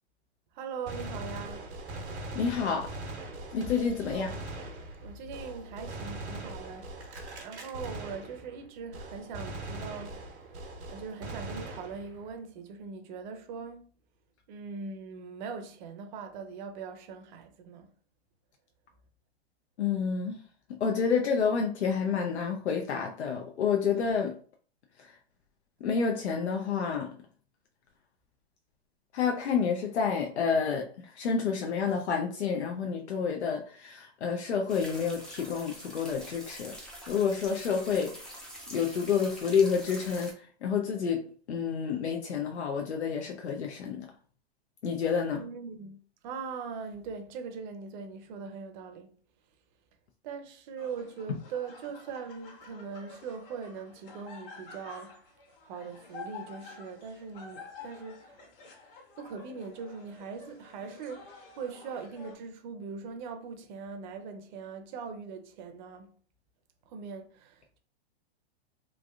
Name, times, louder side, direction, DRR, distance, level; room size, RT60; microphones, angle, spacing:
voice 1, 0.5-1.7 4.1-4.5 5.0-10.3 10.9-13.9 14.5-17.9 45.3-49.1 50.2-55.2 55.6-58.4 59.2-66.1 66.9-67.8, right 5 dB, 45° right, 0.6 m, -41 dB
Gunshot gunfire, 0.9-8.7 8.9-12.3, right 2 dB, 85° right, 1.1 m, -41 dB
voice 2, 2.4-2.9 3.5-4.3 19.8-20.4 20.8-24.3 25.8-27.1 29.1-36.7 37.1-38.4 38.7-40.3 40.6-44.1 44.8-45.4, left 6 dB, 85° left, 0.6 m, -29 dB
sound 1, 34.7-40.3, equal, ahead, 0.4 m, -45 dB
sound 2, 50.8-62.3, left 4 dB, 55° left, 1.2 m, -49 dB
3.3 x 2.5 x 2.3 m
hypercardioid pair, 120°, 32 cm